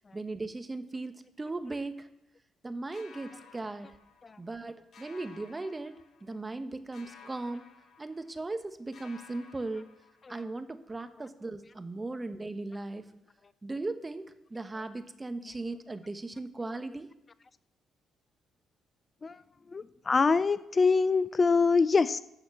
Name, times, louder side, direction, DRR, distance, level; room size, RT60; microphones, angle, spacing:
voice 1, 0.1-2.1 2.6-3.9 4.4-7.6 8.0-9.9 10.3-13.1 13.6-17.1, right 2 dB, 25° right, 10 dB, 1.0 m, -38 dB
sound 1, 2.9-4.6 4.9-6.6 6.9-8.6 8.9-10.6, left 5 dB, 60° left, 1.5 m, -56 dB
voice 2, 19.7-22.2, left 4 dB, 35° left, 16 dB, 0.4 m, -25 dB
12.5 x 4.3 x 7.1 m, 0.86 s
supercardioid pair, 55°, 0 cm